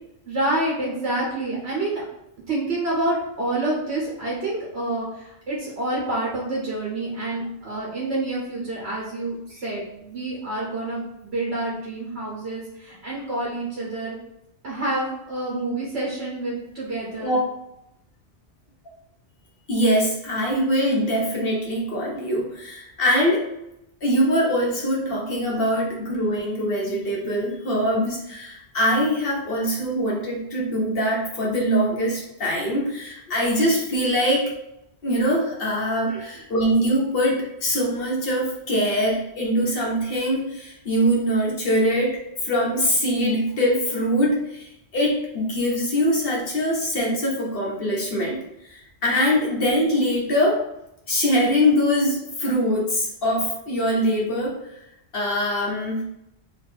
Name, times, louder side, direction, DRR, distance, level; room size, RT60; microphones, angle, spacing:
voice 1, 0.3-2.0 2.5-14.1 14.6-17.3 36.1-36.2, right 2 dB, 65° right, -4 dB, 1.3 m, -28 dB
voice 2, 19.7-23.5 24.0-34.5 35.0-42.1 42.4-48.4 48.7-50.6 51.1-54.5 55.1-56.0, equal, 55° left, -3 dB, 1.1 m, -23 dB
3.2 x 2.3 x 4.2 m, 0.84 s
omnidirectional pair, 1.2 m